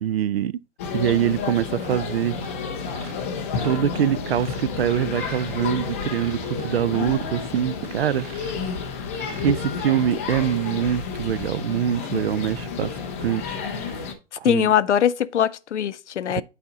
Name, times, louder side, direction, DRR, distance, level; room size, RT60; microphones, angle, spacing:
voice 1, 0.0-0.6 0.9-2.4 3.6-8.3 9.4-12.9 13.2-13.9 14.4-14.7 16.3-16.4, right 10 dB, 55° right, 0.5 m, -24 dB
sound 1, 0.8-14.1, left 5 dB, 10° left, 0.4 m, -30 dB
sound 2, 1.8-2.0 2.3-2.6 2.9-5.7 6.1-8.7 9.1-9.6 10.2-10.3 10.7-10.8 11.2-11.5, right 8 dB, 30° right, 1.0 m, -43 dB
voice 2, 14.4-16.4, left 9 dB, 70° left, 0.6 m, -21 dB
8.7 x 4.2 x 3.8 m
hypercardioid pair, 135°, 37 cm